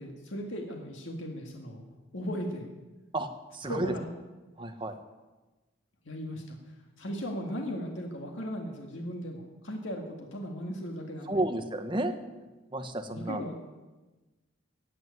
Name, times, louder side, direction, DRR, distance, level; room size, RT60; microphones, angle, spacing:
voice 1, 0.0-1.8 2.1-2.7 3.7-4.1 6.1-6.6 7.0-11.3 13.1-13.5, equal, 70° left, 1 dB, 2.0 m, -37 dB
voice 2, 3.1-3.9 4.6-5.0 11.3-12.2 12.7-13.4, right 1 dB, 25° right, 7 dB, 1.2 m, -32 dB
15.5 x 7.9 x 9.6 m, 1.2 s
head